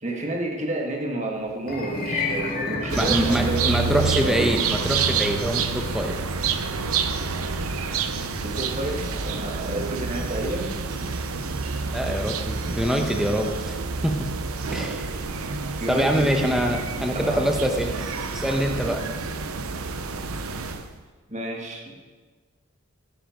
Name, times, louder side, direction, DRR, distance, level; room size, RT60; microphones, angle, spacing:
voice 1, 0.0-4.6 8.4-10.7 15.8-16.3 17.1-17.5 21.3-22.0, right 2 dB, 30° right, 1 dB, 1.8 m, -30 dB
sound 1, 1.6-11.9, left 3 dB, 40° left, 2.1 m, -35 dB
sound 2, 2.9-20.9, right 4 dB, 80° right, 0.8 m, -28 dB
voice 2, 3.0-6.2 11.9-13.8 14.0-14.3 14.7-15.1 15.9-18.1 18.3-19.0, equal, ahead, 2 dB, 1.2 m, -24 dB
16.5 x 8.8 x 5.2 m, 1.4 s
head